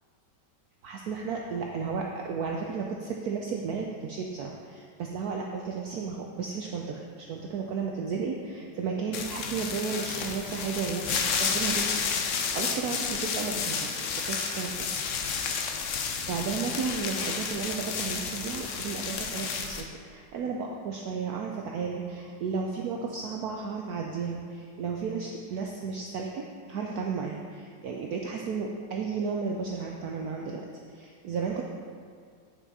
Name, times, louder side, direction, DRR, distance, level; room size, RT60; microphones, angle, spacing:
voice 1, 0.8-12.0 12.5-14.9 16.3-31.6, right 5 dB, 70° right, 0 dB, 0.9 m, -33 dB
sound 1, 9.1-19.8, left 5 dB, 65° left, 0.7 m, -31 dB
9.0 x 5.7 x 4.1 m, 2.1 s
omnidirectional pair, 2.0 m